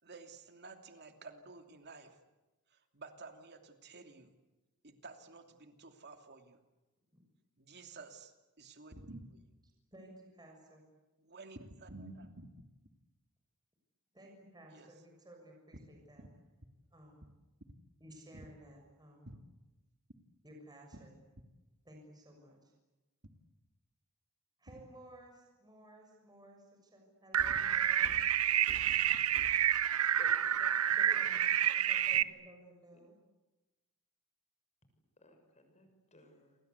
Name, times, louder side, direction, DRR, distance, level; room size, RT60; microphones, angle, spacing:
voice 1, 0.0-2.2 2.7-4.3 4.8-6.6 7.6-9.4 11.2-12.5 14.7-14.9 16.2-16.3 18.3-18.4 19.3-19.4 24.7-24.8 28.9-29.0, right 3 dB, 50° right, 6 dB, 2.9 m, -52 dB
voice 2, 9.9-10.8 14.1-16.3 16.9-17.3 18.0-19.3 20.4-21.2 21.8-22.7 24.6-28.2 30.9-33.2, right 1 dB, 20° right, 1 dB, 6.7 m, -56 dB
sound 1, 27.3-32.2, right 10 dB, 75° right, 0.9 m, -29 dB
Thump thud, 27.4-30.0, left 1 dB, 70° left, 2.8 m, -53 dB
voice 3, 30.2-30.7 31.0-31.4 32.9-33.0 35.2-36.6, left 1 dB, 30° left, 6 dB, 6.6 m, -57 dB
29.5 x 24.5 x 8.3 m, 1.1 s
head